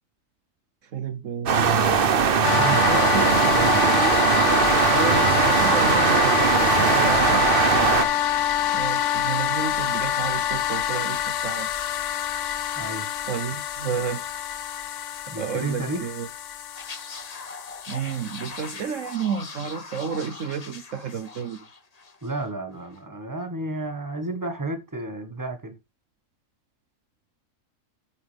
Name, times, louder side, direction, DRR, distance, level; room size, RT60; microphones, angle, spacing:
voice 1, 0.8-2.0 2.7-3.5 4.9-6.4 6.9-7.5 8.7-11.7 13.3-14.3 15.4-16.3 17.9-21.7, right 7 dB, 70° right, 1.2 m, -31 dB
sound 1, 1.5-8.1, right 6 dB, 45° right, 1.0 m, -20 dB
sound 2, 2.4-19.1, left 11 dB, 65° left, 1.1 m, -26 dB
voice 2, 2.5-4.1 6.8-7.2 7.9-8.1 12.8-13.1 15.3-16.1 22.2-25.8, right 2 dB, 15° right, 1.7 m, -32 dB
sound 3, 16.7-22.5 22.7-23.0, left 4 dB, 30° left, 1.1 m, -41 dB
8.9 x 8.8 x 3.5 m
omnidirectional pair, 1.4 m